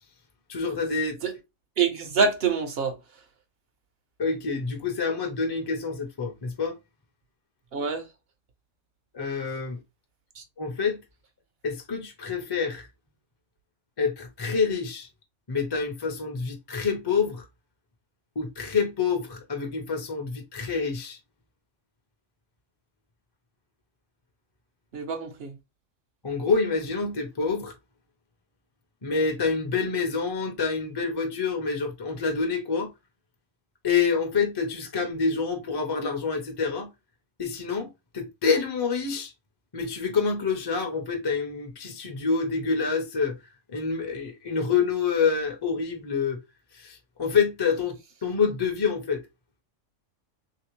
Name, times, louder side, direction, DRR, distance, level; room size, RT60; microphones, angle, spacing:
voice 1, 0.5-1.2 4.2-6.8 9.1-9.8 10.6-11.0 11.6-12.9 14.0-15.1 15.5-17.4 18.4-21.2 26.2-27.7 29.0-32.9 33.8-36.9 37.4-39.3 39.7-43.4 43.7-46.4 46.7-49.2, left 5 dB, 30° left, 0.5 m, -27 dB
voice 2, 1.8-3.0 7.7-8.1 10.4-10.5 24.9-25.6, right 5 dB, 60° right, 0.8 m, -26 dB
3.3 x 2.8 x 2.9 m
omnidirectional pair, 1.3 m